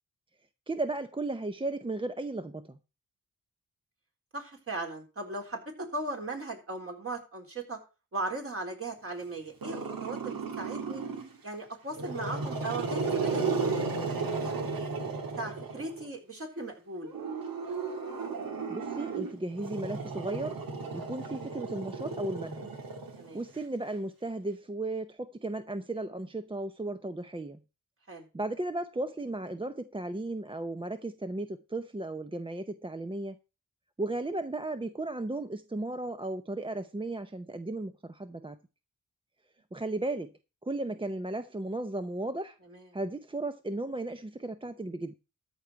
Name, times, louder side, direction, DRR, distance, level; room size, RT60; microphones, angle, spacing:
voice 1, 0.7-2.8 18.7-20.6 20.9-22.7 23.3-27.6 28.3-33.4 34.0-38.6 39.7-40.3 40.6-42.6 42.9-45.1, right 2 dB, 15° right, 0.6 m, -35 dB
voice 2, 4.3-7.8 8.1-11.0 11.4-13.9 14.4-14.9 15.4-17.1 20.9-21.1 23.2-23.4 28.1-28.2 42.7-42.9, right 2 dB, 40° right, 4.0 m, -38 dB
Growling, 9.6-11.4 11.9-16.1 17.0-23.6, right 4 dB, 85° right, 2.3 m, -34 dB
13.5 x 4.7 x 7.4 m
wide cardioid pair, 100°, 34 cm